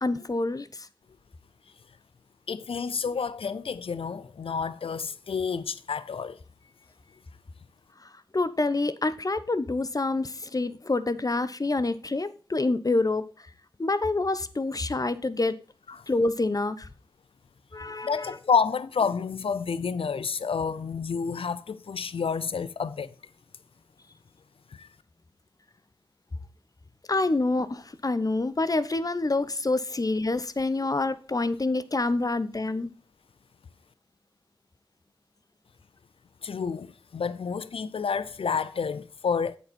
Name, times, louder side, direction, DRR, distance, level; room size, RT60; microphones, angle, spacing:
voice 1, 0.0-0.9 8.0-13.5 13.8-15.6 16.1-16.9 17.7-18.4 27.1-32.9, left 2 dB, 40° left, 0.9 m, -27 dB
voice 2, 2.5-6.4 15.9-16.0 18.0-23.1 24.7-24.9 36.4-39.6, left 5 dB, 85° left, 0.6 m, -29 dB
8.3 x 7.1 x 4.3 m
cardioid pair, 45°, 9 cm